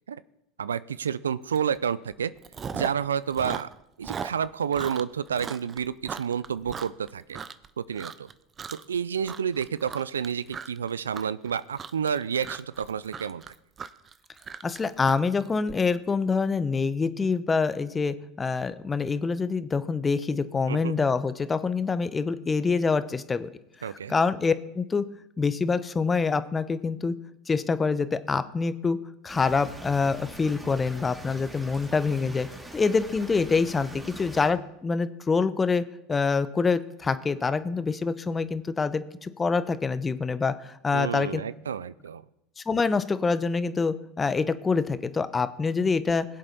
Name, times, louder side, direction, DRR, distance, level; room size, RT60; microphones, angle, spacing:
voice 1, 0.6-2.3 2.7-3.7 4.0-7.4 7.8-8.3 8.7-13.4 20.7-21.0 23.8-24.1 40.9-42.2, right 7 dB, 90° right, 18 dB, 0.4 m, -30 dB
Chewing mastication, 1.6-1.8 2.1-3.1 3.3-7.7 8.0-8.3 8.6-9.0 9.2-15.7, right 6 dB, 30° right, 0.7 m, -38 dB
voice 2, 14.6-23.5 23.8-25.0 25.4-27.2 27.5-29.0 29.2-32.5 32.7-41.4 42.6-46.3, left 4 dB, 20° left, 13 dB, 0.9 m, -26 dB
sound 1, 29.3-34.5, right 1 dB, 10° right, 2.2 m, -43 dB
21.0 x 7.7 x 4.1 m, 0.86 s
hypercardioid pair, 85°, 0 cm